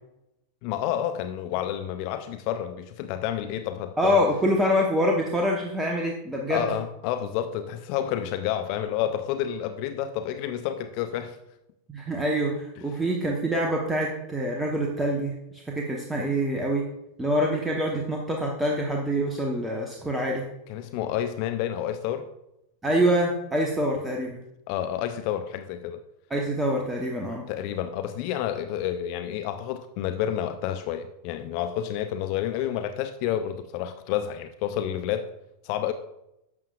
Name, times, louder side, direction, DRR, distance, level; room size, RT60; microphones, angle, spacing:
voice 1, 0.6-4.2 6.5-11.4 20.7-22.3 24.7-26.0 27.5-35.3 35.6-35.9, left 10 dB, 45° left, 0.4 m, -29 dB
voice 2, 4.0-6.7 11.9-16.9 17.2-20.4 22.8-24.4 26.3-27.5, equal, 10° right, 1.0 m, -25 dB
11.0 x 7.2 x 2.4 m
figure-of-eight pair, 90°, 0 cm